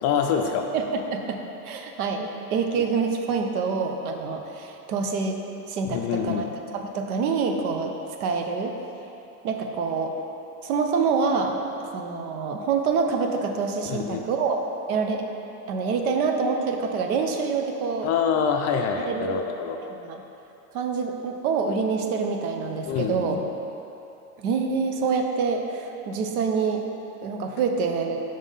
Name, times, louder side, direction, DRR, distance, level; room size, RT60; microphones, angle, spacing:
voice 1, 0.0-0.7 5.8-6.5 13.8-14.3 18.0-19.8 22.9-23.4, left 7 dB, 35° left, 4 dB, 0.4 m, -26 dB
voice 2, 0.7-1.4 1.6-5.4 5.7-6.4 6.7-7.9 8.2-8.7 9.4-10.1 10.6-11.6 11.9-14.6 14.9-15.2 15.7-18.1 19.1-19.5 20.1-20.2 20.7-23.4 24.4-26.8 27.2-28.2, right 5 dB, 70° right, 4 dB, 0.8 m, -26 dB
5.3 x 3.5 x 5.4 m, 2.9 s
hypercardioid pair, 95°, 45 cm